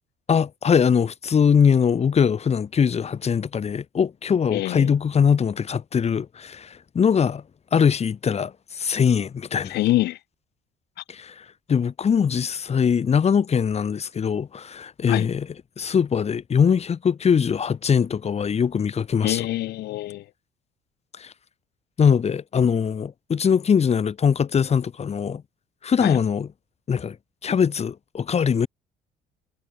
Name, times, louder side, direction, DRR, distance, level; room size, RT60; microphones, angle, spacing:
voice 1, 0.3-7.4 7.7-9.8 11.1-15.5 15.8-19.5 21.2-21.3 22.0-25.4 25.8-26.5 26.9-27.2 27.4-28.7, left 7 dB, 40° left, 6.2 m, -22 dB
voice 2, 4.5-4.9 9.6-10.2 15.1-15.3 19.2-20.2 26.0-26.2, left 16 dB, 80° left, 3.7 m, -25 dB
cardioid pair, 110°, 17 cm